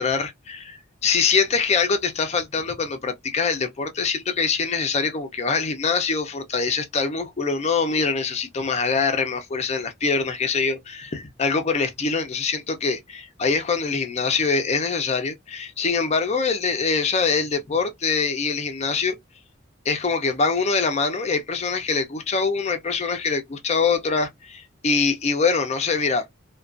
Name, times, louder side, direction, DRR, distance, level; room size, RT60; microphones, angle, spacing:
voice 1, 0.0-19.2 19.9-26.2, left 5 dB, 35° left, 0.4 m, -24 dB
2.4 x 2.2 x 2.4 m
head